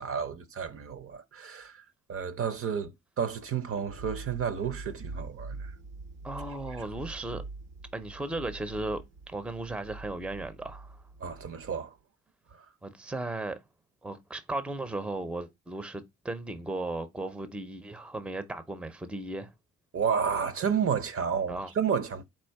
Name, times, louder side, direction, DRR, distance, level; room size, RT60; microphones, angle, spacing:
voice 1, 0.0-1.8 2.1-5.7 11.2-11.9 19.9-22.2, right 7 dB, 45° right, 0.7 m, -31 dB
sound 1, 3.9-11.7, right 3 dB, 80° right, 0.9 m, -44 dB
voice 2, 6.2-7.4 7.9-11.0 12.8-13.6 14.0-19.5 21.5-21.7, right 2 dB, 5° right, 0.5 m, -36 dB
4.3 x 2.5 x 4.6 m
cardioid pair, 90°, 30 cm